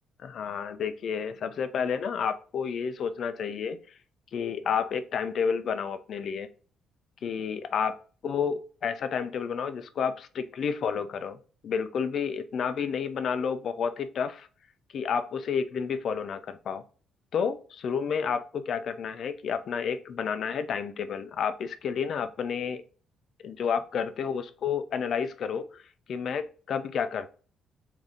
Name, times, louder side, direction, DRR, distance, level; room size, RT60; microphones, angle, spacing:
voice 1, 0.2-3.8 4.3-6.5 7.2-8.0 8.2-11.4 11.6-14.5 14.9-16.8 17.3-22.8 23.4-25.8 26.1-27.3, left 6 dB, 50° left, 0.4 m, -30 dB
3.7 x 2.7 x 3.4 m
cardioid pair, 150°, 0 cm